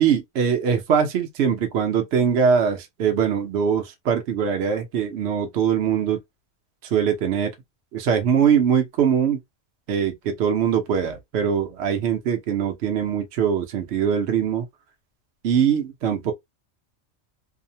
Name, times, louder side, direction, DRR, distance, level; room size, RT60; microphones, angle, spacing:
voice 1, 0.0-6.2 6.8-7.5 7.9-9.4 9.9-14.6 15.4-16.3, right 7 dB, 65° right, 0.9 m, -22 dB
2.7 x 2.1 x 2.6 m
omnidirectional pair, 1.3 m